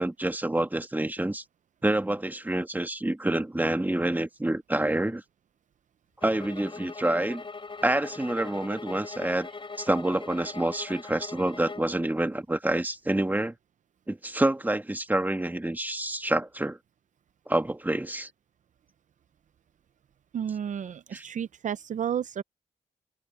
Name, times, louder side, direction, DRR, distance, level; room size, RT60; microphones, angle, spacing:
voice 1, 0.0-1.4 1.8-5.2 6.2-7.4 7.8-9.5 9.8-13.5 14.1-16.8 17.5-18.3 21.1-21.2, right 1 dB, 10° right, 1.8 m, -27 dB
sound 1, 6.2-12.0, left 4 dB, 35° left, 4.0 m, -41 dB
voice 2, 20.3-22.4, right 8 dB, 65° right, 0.6 m, -32 dB
cardioid pair, 65°, 14 cm